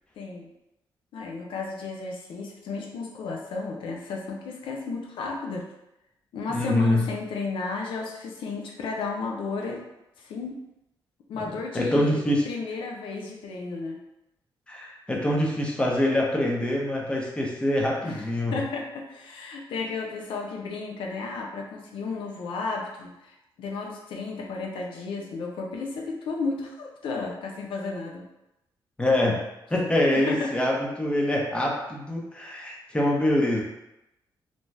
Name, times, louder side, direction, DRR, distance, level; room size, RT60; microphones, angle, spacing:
voice 1, 0.2-0.5 1.1-5.7 6.3-9.8 10.2-10.6 11.3-12.2 12.4-14.0 18.0-18.2 18.5-28.3 30.1-30.5, left 4 dB, 85° left, 0 dB, 0.5 m, -33 dB
voice 2, 6.5-7.0 11.4-12.4 14.7-18.6 29.0-29.4 29.7-33.6, left 1 dB, 10° left, -2 dB, 0.7 m, -25 dB
2.6 x 2.2 x 3.2 m, 0.89 s
cardioid pair, 105°, 9 cm